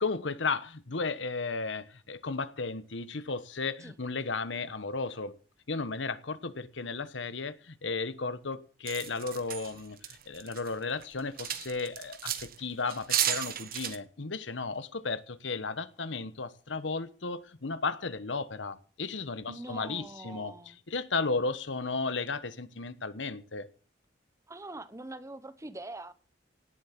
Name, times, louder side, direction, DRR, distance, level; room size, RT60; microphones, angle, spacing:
voice 1, 0.0-5.3 5.7-20.5 20.9-23.7, left 4 dB, 80° left, 1.2 m, -34 dB
sound 1, 8.9-10.7 11.0-12.6 12.9-14.0, right 10 dB, 55° right, 1.3 m, -33 dB
voice 2, 19.5-20.8 24.5-26.1, right 2 dB, 15° right, 1.0 m, -43 dB
18.0 x 8.0 x 7.5 m
head